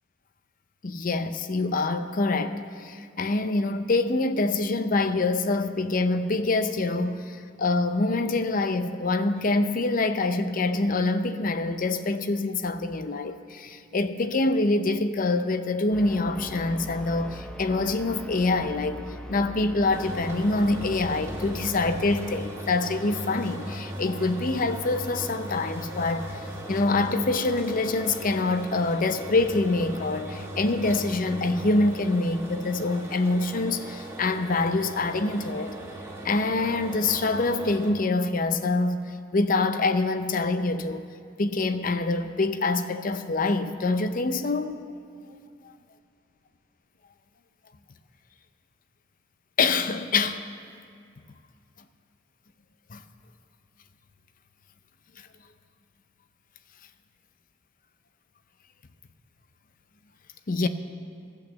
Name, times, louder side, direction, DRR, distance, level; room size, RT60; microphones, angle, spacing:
voice 1, 0.8-19.0 19.3-35.7 36.2-41.1 41.4-44.8 45.6-45.7 49.6-50.4 52.9-53.0 60.5-60.7, left 3 dB, 45° left, 0.6 m, -25 dB
sound 1, 15.9-22.4, equal, 5° left, 0.6 m, -40 dB
sound 2, 19.9-37.9, right 1 dB, 15° right, 1.5 m, -38 dB
14.0 x 8.3 x 7.2 m
head